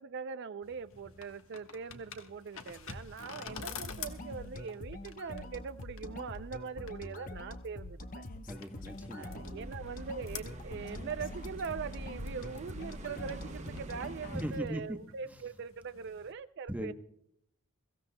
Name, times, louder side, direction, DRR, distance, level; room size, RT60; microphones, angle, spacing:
voice 1, 0.0-8.2 9.1-16.9, right 5 dB, 50° right, 0.4 m, -42 dB
sound 1, 0.6-16.3, left 6 dB, 70° left, 1.2 m, -50 dB
sound 2, 3.5-14.6, left 2 dB, 40° left, 0.8 m, -45 dB
voice 2, 8.5-9.7 14.3-15.0 15.3-15.4 16.7-16.9, equal, 5° right, 0.9 m, -39 dB
sound 3, 9.6-14.6, right 1 dB, 30° right, 1.1 m, -46 dB
23.0 x 15.5 x 2.2 m
head